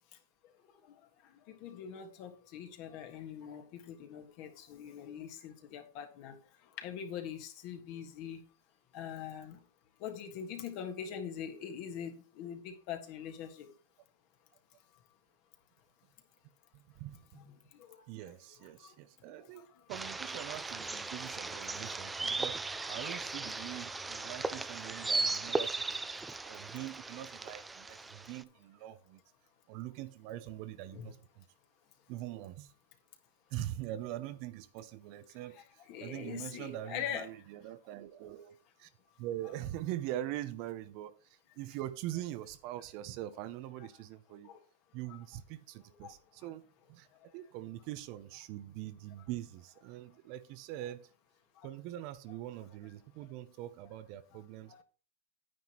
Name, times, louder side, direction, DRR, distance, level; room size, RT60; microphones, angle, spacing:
voice 1, 1.2-6.3 6.8-8.4 8.9-9.6 10.0-13.7 17.3-17.4 17.7-18.0 18.8-18.9 19.6-19.7 23.1-23.2 30.9-31.1 35.5-37.2 44.4-44.6 46.0-46.1 51.6-51.7 54.7-54.8, left 8 dB, 45° left, 1.6 m, -43 dB
voice 2, 16.7-17.4 18.1-26.0 26.4-29.2 29.7-31.4 32.1-32.7 33.5-38.9 39.2-44.5 44.9-46.6 46.9-51.1 51.6-54.8, right 13 dB, 45° right, 0.7 m, -43 dB
sound 1, 19.9-28.4, right 3 dB, 10° right, 0.5 m, -37 dB
9.5 x 9.3 x 3.0 m
hypercardioid pair, 135°, 0 cm